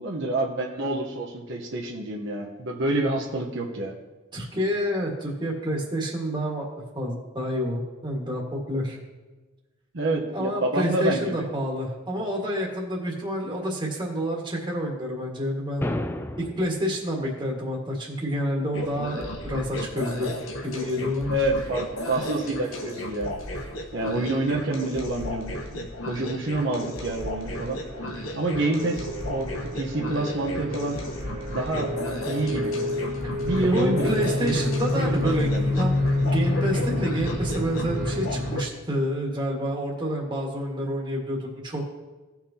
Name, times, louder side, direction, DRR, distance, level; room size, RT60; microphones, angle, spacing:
voice 1, 0.0-3.9 9.9-11.5 21.3-23.3 23.9-27.8 28.3-31.0 31.5-31.9 32.2-32.8 33.3-34.6 34.9-35.7, right 2 dB, 65° right, 0 dB, 1.1 m, -28 dB
voice 2, 4.3-6.6 6.9-9.0 10.3-15.9 16.4-20.3 20.6-21.3 33.2-33.3 33.6-41.8, equal, 25° right, -1 dB, 1.8 m, -28 dB
sound 1, 15.8-16.8, left 1 dB, 10° left, 0.4 m, -31 dB
sound 2, 18.7-38.6, left 1 dB, 85° left, 1.2 m, -35 dB
sound 3, 27.7-38.5, left 1 dB, 80° right, 1.9 m, -28 dB
17.0 x 5.9 x 2.9 m, 1.2 s
head